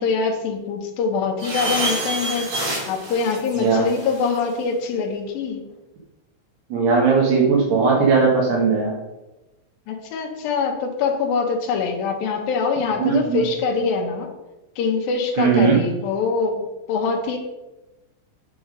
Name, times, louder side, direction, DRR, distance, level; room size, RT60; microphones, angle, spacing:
voice 1, 0.0-2.5 2.9-5.6 9.9-14.3 14.8-17.4, left 5 dB, 75° left, 2 dB, 2.1 m, -24 dB
sound 1, 1.4-4.4, right 1 dB, 30° right, 3.4 m, -27 dB
voice 2, 3.6-3.9 6.7-9.0 13.0-13.4 15.4-15.8, right 5 dB, 65° right, -3 dB, 3.2 m, -18 dB
8.4 x 5.8 x 5.1 m, 1.0 s
omnidirectional pair, 5.6 m